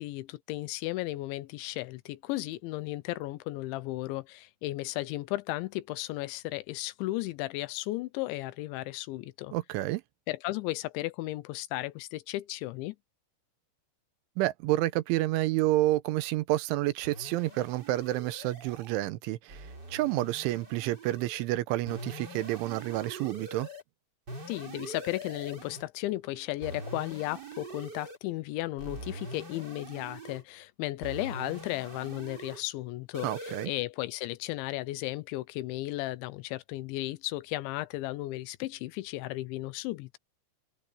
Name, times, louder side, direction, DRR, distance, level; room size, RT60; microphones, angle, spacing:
voice 1, 0.0-9.5 10.3-13.0 24.5-40.2, left 18 dB, 80° left, 3.0 m, -35 dB
voice 2, 9.5-10.0 14.4-23.7 33.2-33.7, right 16 dB, 90° right, 3.3 m, -29 dB
sound 1, 17.0-19.0 19.5-21.5 21.9-23.8 24.3-25.8 26.6-28.2 28.8-30.4 31.0-32.6 33.1-33.7, right 1 dB, 20° right, 4.5 m, -43 dB
omnidirectional pair, 5.4 m